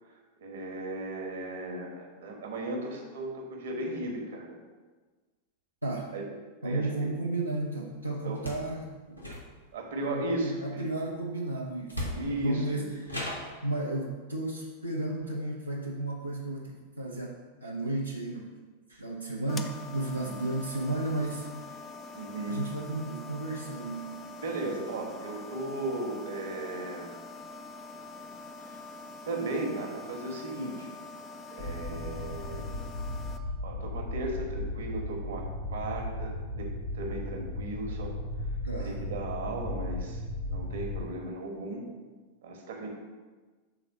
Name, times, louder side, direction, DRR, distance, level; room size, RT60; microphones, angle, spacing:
voice 1, 0.4-4.6 6.1-6.3 6.6-7.1 8.2-8.4 9.7-10.9 12.1-12.9 20.2-20.5 22.1-22.7 24.4-27.2 28.6-28.8 29.3-30.9 31.5-32.8 33.6-35.4 35.7-38.1 38.8-40.2 40.5-41.9 42.4-42.9, right 2 dB, 60° right, 1 dB, 1.2 m, -36 dB
voice 2, 6.6-9.3 10.0-13.2 13.6-18.6 18.9-21.8 22.5-24.2 38.6-39.0, right 2 dB, 85° right, -3 dB, 0.7 m, -33 dB
sound 1, 8.3-8.7 9.1-9.8 11.3-11.4 11.9-12.5 13.1-13.6, left 1 dB, 90° left, 1.1 m, -36 dB
sound 2, 19.5-33.4, left 3 dB, 25° left, 0.5 m, -44 dB
sound 3, 31.6-41.0, left 2 dB, 60° left, 1.4 m, -36 dB
5.9 x 3.9 x 5.7 m, 1.3 s
figure-of-eight pair, 90°, 0 cm